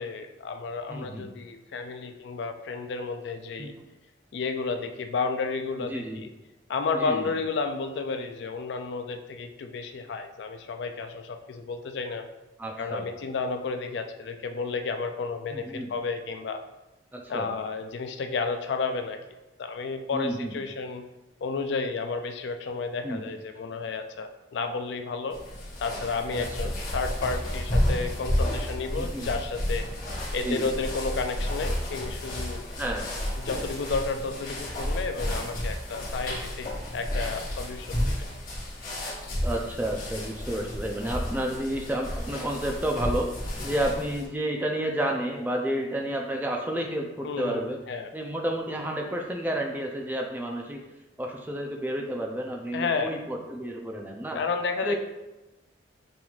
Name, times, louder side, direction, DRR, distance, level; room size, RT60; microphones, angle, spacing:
voice 1, 0.0-3.7 4.3-6.3 6.7-12.3 12.8-16.6 17.3-19.2 19.6-21.0 21.4-25.4 25.8-29.9 30.3-32.6 33.4-38.2 47.2-48.1 52.7-53.2 54.3-55.0, left 4 dB, 70° left, 7 dB, 0.4 m, -32 dB
voice 2, 0.9-1.3 3.6-3.7 5.9-6.2 6.9-7.3 12.6-13.1 15.5-15.9 17.1-17.5 20.1-20.5 23.0-23.2 26.6-26.7 28.9-29.3 30.4-30.7 32.8-33.1 39.4-47.8 48.1-50.8 51.2-54.4 54.8-55.0, right 1 dB, 10° right, 1 dB, 0.3 m, -31 dB
sound 1, 25.3-44.3, equal, 45° left, 1.0 m, -31 dB
5.2 x 3.0 x 2.4 m, 1.0 s
head